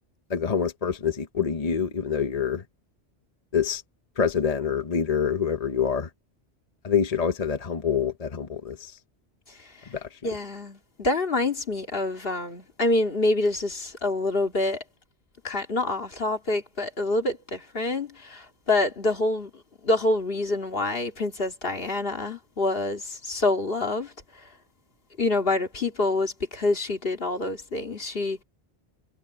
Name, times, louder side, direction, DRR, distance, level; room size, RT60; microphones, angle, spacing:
voice 1, 0.3-2.6 3.5-3.8 4.2-6.1 6.8-9.0 9.9-10.2, left 7 dB, 40° left, 0.9 m, -26 dB
voice 2, 9.5-9.9 10.2-14.8 15.4-19.5 19.8-24.1 24.4-24.5 25.2-28.4, left 2 dB, 60° left, 2.3 m, -27 dB
omnidirectional pair, 1.1 m